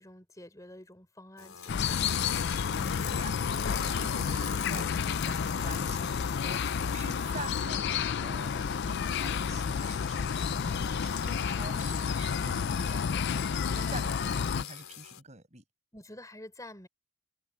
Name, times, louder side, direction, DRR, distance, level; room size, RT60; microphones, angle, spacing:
voice 1, 0.0-2.0 15.9-16.9, left 1 dB, 15° left, 4.0 m, -48 dB
sound 1, 1.4-15.2, left 10 dB, 75° left, 4.2 m, -41 dB
sound 2, 1.7-14.6, left 6 dB, 50° left, 0.4 m, -31 dB
voice 2, 2.3-15.6, right 3 dB, 30° right, 7.5 m, -47 dB
head